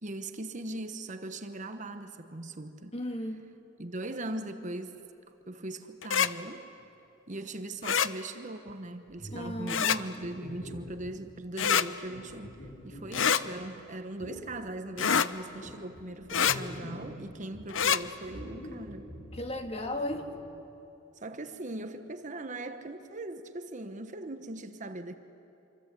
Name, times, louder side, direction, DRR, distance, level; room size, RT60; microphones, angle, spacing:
voice 1, 0.0-3.0 3.8-5.0 5.5-6.6 7.3-19.1 21.2-25.2, right 2 dB, 40° right, 1.1 m, -40 dB
voice 2, 2.9-3.4 9.3-9.9 19.3-20.3, left 1 dB, 30° left, 1.9 m, -35 dB
sound 1, 6.0-6.3 7.8-8.1 9.7-10.0 11.6-11.9 13.1-13.4 15.0-15.3 16.3-16.6 17.7-18.0, left 7 dB, 70° left, 0.7 m, -25 dB
sound 2, 9.1-11.0 11.6-13.7 14.2-14.5 15.1-17.2 17.5-20.4, left 1 dB, 50° left, 7.1 m, -45 dB
26.0 x 25.5 x 8.4 m
head